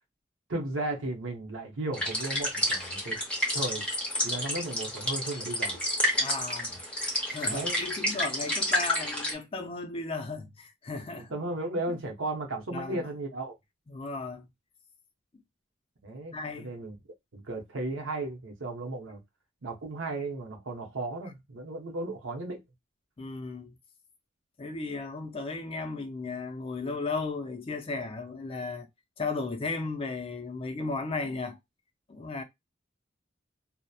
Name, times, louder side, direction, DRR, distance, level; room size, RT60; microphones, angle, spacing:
voice 1, 0.5-3.2 3.5-3.8 4.2-5.8 6.7-6.8 7.4-7.8 11.2-13.6 16.0-17.0 17.3-19.2 19.6-22.6, right 2 dB, 75° right, 0.7 m, -35 dB
sound 1, 1.9-9.3, left 1 dB, 5° left, 0.8 m, -30 dB
voice 2, 6.1-6.7 7.3-11.3 12.7-13.1 13.9-14.5 16.3-16.7 23.2-23.8 24.6-28.9 29.2-31.6 32.1-32.4, left 3 dB, 30° left, 0.4 m, -35 dB
2.8 x 2.0 x 2.2 m
head